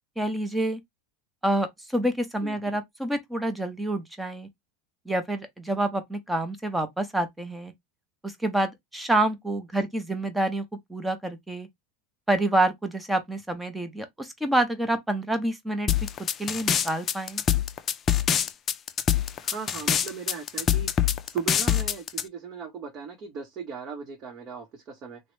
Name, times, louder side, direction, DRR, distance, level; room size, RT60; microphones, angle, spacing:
voice 1, 0.2-0.8 1.4-4.5 5.1-7.7 8.2-10.6 10.9-11.7 12.3-16.0 16.4-17.4, right 1 dB, 5° right, 0.7 m, -27 dB
sound 1, 15.9-22.2, left 9 dB, 30° left, 0.4 m, -24 dB
voice 2, 19.4-25.2, right 6 dB, 45° right, 0.9 m, -38 dB
3.0 x 2.0 x 3.1 m
supercardioid pair, 115°, 0 cm